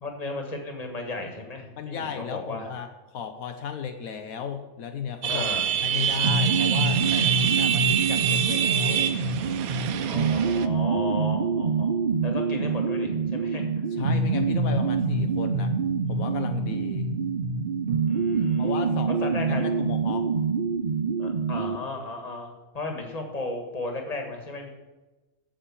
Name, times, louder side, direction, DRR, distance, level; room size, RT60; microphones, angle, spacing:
voice 1, 0.0-2.7 5.3-5.7 10.0-12.0 12.2-13.6 18.0-18.7 19.2-19.6 21.2-24.7, left 2 dB, 30° left, 3 dB, 1.6 m, -35 dB
voice 2, 1.8-2.9 3.1-5.5 5.8-9.4 13.9-17.1 18.6-20.3, left 7 dB, 75° left, 7 dB, 1.1 m, -35 dB
sound 1, 5.2-10.7, right 10 dB, 80° right, 1.1 m, -26 dB
sound 2, 6.2-21.8, right 4 dB, 60° right, 0.4 m, -26 dB
8.7 x 7.2 x 7.3 m, 1.1 s
omnidirectional pair, 1.5 m